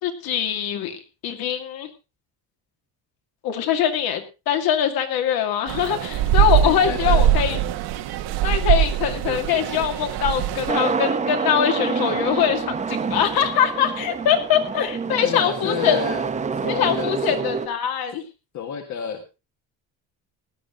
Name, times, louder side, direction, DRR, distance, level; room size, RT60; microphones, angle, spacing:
voice 1, 0.0-1.9 3.4-7.6 8.4-16.0 16.7-18.2, left 9 dB, 65° left, 6 dB, 2.5 m, -23 dB
sound 1, 5.7-10.7, right 11 dB, 80° right, 1.6 m, -22 dB
voice 2, 6.6-7.6 15.2-17.4 18.5-19.4, left 8 dB, 50° left, 5 dB, 1.6 m, -31 dB
sound 2, 10.7-17.7, right 5 dB, 20° right, 0.9 m, -27 dB
16.5 x 10.5 x 3.8 m, 0.29 s
cardioid pair, 170°, 39 cm